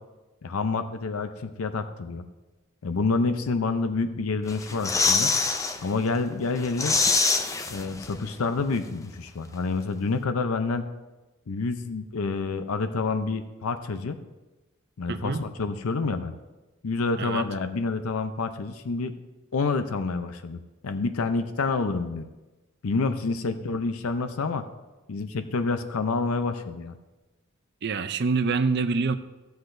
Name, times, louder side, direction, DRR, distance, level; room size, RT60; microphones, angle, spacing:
voice 1, 0.4-2.3 2.8-5.3 5.8-7.0 7.7-10.9 11.5-14.2 15.0-16.3 16.8-19.1 19.5-22.3 22.8-24.6 25.1-26.9, left 4 dB, 85° left, 9 dB, 0.6 m, -28 dB
sound 1, 4.5-5.8 6.2-6.3 6.6-8.3 8.6-8.7, left 4 dB, 15° left, 0.3 m, -24 dB
voice 2, 15.1-15.4 17.2-17.4 27.8-29.2, right 4 dB, 50° right, 11 dB, 0.5 m, -25 dB
14.5 x 7.8 x 2.6 m, 1.1 s
head